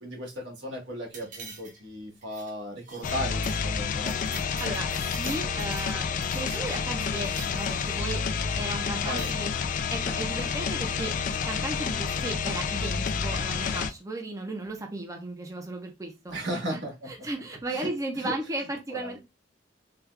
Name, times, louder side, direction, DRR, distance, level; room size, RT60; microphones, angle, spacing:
voice 1, 0.0-4.1 9.0-9.3 16.3-17.1 17.7-17.9 18.2-18.4 18.9-19.2, equal, 85° right, 0 dB, 1.5 m, -35 dB
sound 1, 1.1-1.9 2.2-2.5 2.8-3.1 3.4-3.6 3.9-5.9 6.2-8.0 8.9-9.4, right 3 dB, 45° right, 0.9 m, -45 dB
sound 2, 3.0-13.9, left 6 dB, 45° left, 0.3 m, -29 dB
voice 2, 4.6-8.2 8.5-9.5 9.9-16.8 17.1-19.2, right 2 dB, 20° right, 2 dB, 0.6 m, -35 dB
3.3 x 2.3 x 3.2 m, 0.24 s
head